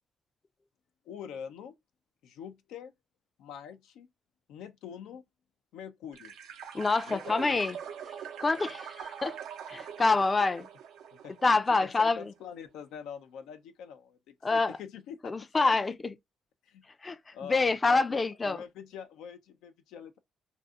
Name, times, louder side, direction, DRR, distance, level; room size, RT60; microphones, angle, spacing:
voice 1, 1.1-1.7 2.2-2.9 3.4-4.1 4.5-5.2 5.7-6.3 7.1-7.6 11.1-11.4 11.8-15.8 16.6-16.8 17.3-20.2, left 8 dB, 90° left, 0.5 m, -44 dB
sound 1, 6.1-11.9, right 8 dB, 90° right, 0.7 m, -43 dB
voice 2, 6.7-7.8 8.4-9.4 9.7-10.7 11.4-12.3 14.4-14.8 15.2-16.1 17.0-17.2 17.5-18.6, left 3 dB, 30° left, 0.4 m, -26 dB
2.6 x 2.5 x 3.6 m
cardioid pair, 90°, 0 cm